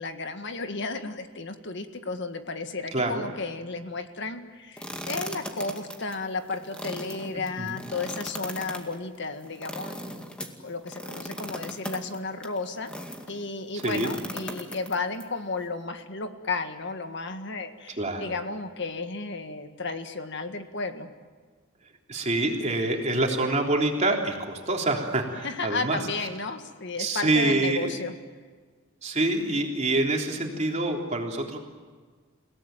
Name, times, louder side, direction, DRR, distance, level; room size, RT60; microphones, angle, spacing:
voice 1, 0.0-10.3 10.6-12.9 13.3-21.1 25.4-28.1, left 3 dB, 60° left, 7 dB, 1.8 m, -33 dB
sound 1, 4.8-13.3 13.8-15.2, equal, 5° left, 2.2 m, -38 dB
voice 2, 13.7-14.1 18.0-18.3 22.1-26.0 27.0-28.0 29.0-31.6, right 2 dB, 35° right, 1 dB, 3.6 m, -26 dB
29.5 x 18.0 x 9.2 m, 1.5 s
head